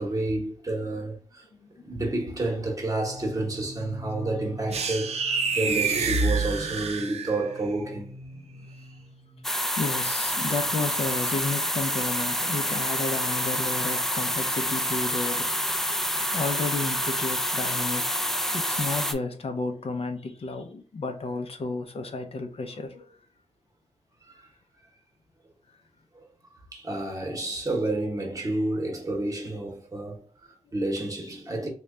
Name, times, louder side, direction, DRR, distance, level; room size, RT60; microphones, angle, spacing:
voice 1, 0.0-1.5 1.8-8.2 14.3-14.4 24.2-24.5 26.1-31.7, right 2 dB, 30° right, 1.0 m, -30 dB
voice 2, 1.5-1.8 8.3-8.9 9.8-15.5 16.3-18.0 18.5-23.2 25.7-25.8, left 3 dB, 55° left, 0.5 m, -32 dB
sound 1, 2.7-14.9 15.2-17.3 17.6-18.0, left 1 dB, 25° left, 0.8 m, -47 dB
sound 2, 4.7-7.6, right 4 dB, 65° right, 0.5 m, -27 dB
sound 3, 9.4-19.1, equal, 5° left, 0.4 m, -27 dB
3.2 x 2.2 x 3.7 m
wide cardioid pair, 120°, 12 cm